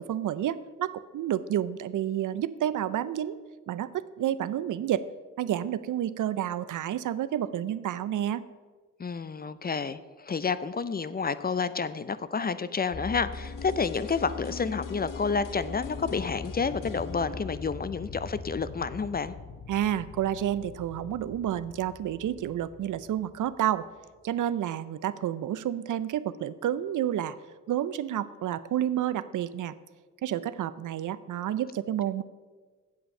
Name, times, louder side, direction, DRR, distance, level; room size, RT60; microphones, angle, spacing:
voice 1, 0.0-3.4 3.7-5.1 5.4-8.4 19.7-23.9 24.2-27.4 27.7-29.7 30.2-32.2, right 11 dB, 70° right, 15 dB, 0.5 m, -30 dB
voice 2, 9.0-19.3, left 5 dB, 30° left, 14 dB, 0.5 m, -30 dB
sound 1, 12.9-24.3, left 4 dB, 50° left, 1.0 m, -42 dB
sound 2, 13.3-19.2 19.5-19.6, left 8 dB, 80° left, 0.7 m, -44 dB
8.2 x 7.8 x 5.4 m, 1.4 s
cardioid pair, 60°, 32 cm